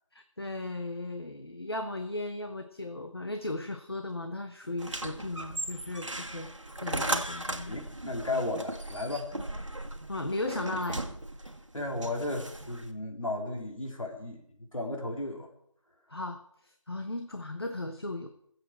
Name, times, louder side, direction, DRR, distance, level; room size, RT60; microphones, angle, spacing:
voice 1, 0.1-6.5 6.8-7.7 9.4-9.5 10.1-11.1 16.1-18.3, left 2 dB, 50° left, 7 dB, 0.9 m, -36 dB
sound 1, 4.8-12.9, right 1 dB, 70° right, 1.6 m, -37 dB
voice 2, 7.7-9.3 11.7-15.5, left 2 dB, 90° left, 2 dB, 2.8 m, -34 dB
21.0 x 7.9 x 4.4 m, 0.71 s
figure-of-eight pair, 175°, 17 cm